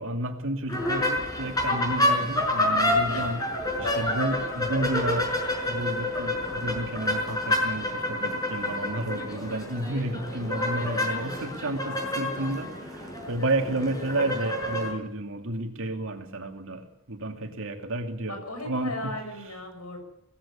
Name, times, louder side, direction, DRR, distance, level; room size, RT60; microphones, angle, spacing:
voice 1, 0.0-3.4 3.8-5.3 5.7-18.4 18.6-19.1, right 1 dB, 65° right, 5 dB, 2.7 m, -31 dB
sound 1, 0.7-14.9, left 1 dB, 15° left, 5.7 m, -28 dB
voice 2, 3.7-4.2 10.1-11.8 18.3-20.0, left 2 dB, 90° left, 5 dB, 7.0 m, -39 dB
19.0 x 16.0 x 8.7 m, 0.84 s
head